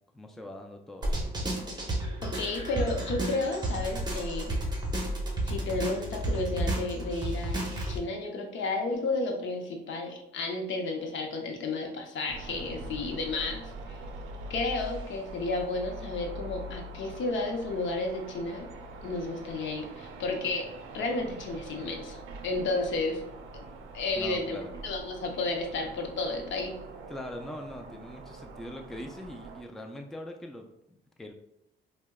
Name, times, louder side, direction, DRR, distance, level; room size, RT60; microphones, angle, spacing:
voice 1, 0.1-1.3 24.1-24.7 27.1-31.3, left 1 dB, ahead, 3 dB, 0.3 m, -42 dB
sound 1, 1.0-8.0, right 1 dB, 20° right, 0.8 m, -32 dB
voice 2, 2.2-4.6 5.4-13.6 13.9-14.0 14.5-18.7 19.0-20.7 20.9-23.2 23.5-23.6 23.9-26.8, left 3 dB, 70° left, 2 dB, 0.7 m, -32 dB
sound 2, 12.3-29.6, right 2 dB, 90° right, 0.4 m, -44 dB
4.5 x 2.1 x 2.2 m, 0.82 s
cardioid pair, 90°, 20 cm